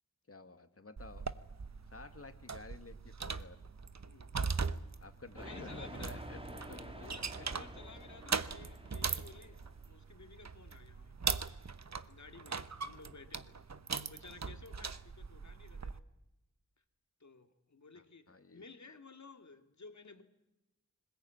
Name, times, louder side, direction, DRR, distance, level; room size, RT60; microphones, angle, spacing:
voice 1, 0.3-1.3 1.9-3.6 5.0-7.1 7.4-7.6 17.9-18.7, left 3 dB, 45° left, 8 dB, 1.9 m, -52 dB
sound 1, 1.0-16.0, right 5 dB, 60° right, 1.0 m, -40 dB
voice 2, 5.4-6.3 6.9-11.4 12.1-13.6 14.0-16.0 17.2-20.2, left 4 dB, 65° left, 6 dB, 2.4 m, -55 dB
sound 2, 5.4-9.9, right 1 dB, 15° right, 2.4 m, -49 dB
21.5 x 20.0 x 9.3 m, 0.93 s
wide cardioid pair, 65°, 31 cm